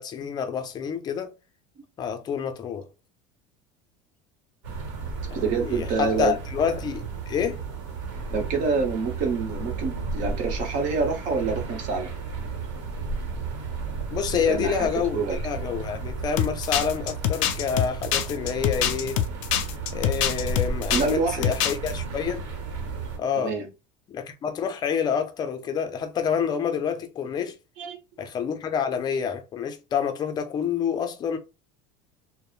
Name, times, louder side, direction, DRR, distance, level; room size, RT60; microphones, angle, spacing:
voice 1, 0.0-1.3 2.0-2.9 5.3-7.6 14.1-19.2 19.9-22.5 23.2-23.5 24.1-27.6 28.2-31.4, left 7 dB, 25° left, 0.4 m, -28 dB
sound 1, 4.6-23.2, right 4 dB, 80° right, 0.9 m, -33 dB
voice 2, 5.3-6.3 8.3-12.1 14.3-14.9 15.1-15.4 20.9-21.5 23.3-23.7 27.8-28.0, right 4 dB, 55° right, 0.9 m, -26 dB
sound 2, 16.4-21.1 21.4-21.9, left 11 dB, 85° left, 0.4 m, -25 dB
2.9 x 2.0 x 2.3 m
supercardioid pair, 135°, 16 cm